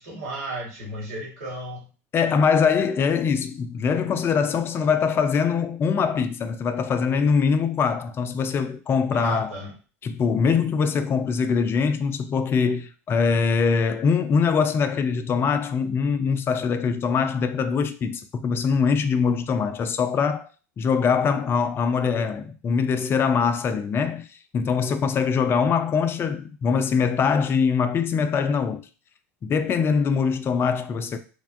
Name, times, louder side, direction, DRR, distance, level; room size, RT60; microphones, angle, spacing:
voice 1, 0.0-1.9 9.1-9.7, right 1 dB, 75° right, 1.5 m, -34 dB
voice 2, 2.1-9.5 10.0-20.5 20.8-24.3 24.5-28.8 29.4-31.2, left 6 dB, 30° left, 0.3 m, -23 dB
3.3 x 2.2 x 2.5 m
hypercardioid pair, 80°, 8 cm